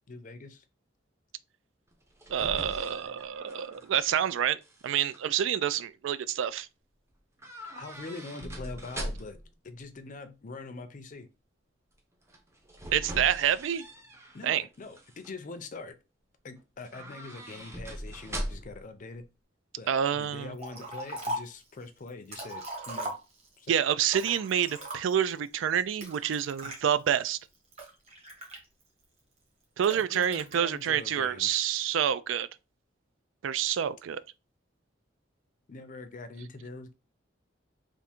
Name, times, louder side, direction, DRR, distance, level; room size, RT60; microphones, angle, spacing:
voice 1, 0.1-0.6 7.8-9.4 9.6-11.3 14.3-15.9 16.4-19.2 19.8-23.1 23.6-23.7 29.9-31.6 35.7-36.9, left 3 dB, 40° left, 0.5 m, -43 dB
sound 1, 1.9-4.3 4.6-5.2 7.4-9.5 12.3-14.4 14.8-15.3 16.8-18.9 19.1-19.2, right 1 dB, 15° right, 0.6 m, -41 dB
voice 2, 2.3-4.6 4.8-6.7 12.9-13.8 14.4-14.6 19.9-20.6 23.7-27.4 29.8-32.5 33.4-34.2, right 9 dB, 75° right, 0.3 m, -28 dB
Liquid, 20.6-21.6 22.1-23.6 24.1-25.3 26.0-26.8 27.4-29.0 29.8-30.6, right 1 dB, 35° right, 1.3 m, -39 dB
3.5 x 2.5 x 4.3 m
head